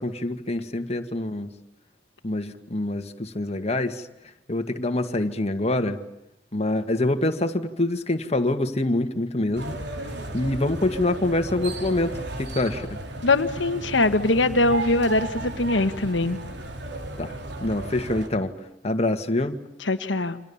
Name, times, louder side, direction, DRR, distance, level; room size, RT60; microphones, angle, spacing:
voice 1, 0.0-1.5 2.2-4.1 4.5-6.0 6.5-9.8 10.3-13.0 17.2-18.5 18.8-19.6, left 1 dB, 35° left, 2.0 m, -25 dB
sound 1, 9.5-18.3, right 1 dB, 65° right, 4.4 m, -34 dB
voice 2, 13.2-16.4 19.8-20.4, left 2 dB, 90° left, 1.5 m, -22 dB
29.0 x 26.5 x 7.2 m
head